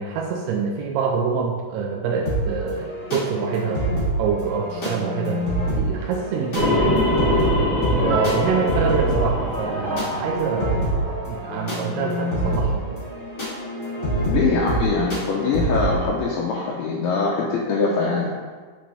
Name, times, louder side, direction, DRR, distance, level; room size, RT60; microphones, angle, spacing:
voice 1, 0.0-3.9 4.2-5.4 5.8-7.3 8.0-10.9 11.2-13.0, right 6 dB, 85° right, 2 dB, 2.3 m, -26 dB
sound 1, 2.2-16.0, right 1 dB, 40° left, 1.1 m, -26 dB
sound 2, 6.5-11.0, left 1 dB, 50° right, 2.3 m, -24 dB
sound 3, 8.0-12.3, right 1 dB, 70° right, 1.3 m, -30 dB
voice 2, 14.2-18.3, left 4 dB, 80° left, -3 dB, 2.4 m, -23 dB
7.8 x 4.5 x 3.3 m, 1.5 s
omnidirectional pair, 4.9 m